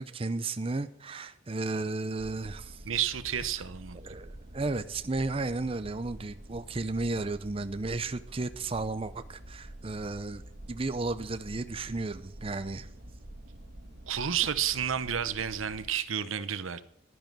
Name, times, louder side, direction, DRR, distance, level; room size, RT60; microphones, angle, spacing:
voice 1, 0.0-2.8 4.0-10.4 10.7-12.9, right 3 dB, 30° right, 0.5 m, -33 dB
sound 1, 2.2-15.9, right 1 dB, 50° right, 2.4 m, -47 dB
voice 2, 2.8-4.0 14.1-16.8, right 9 dB, 90° right, 0.8 m, -31 dB
11.5 x 10.5 x 6.0 m
head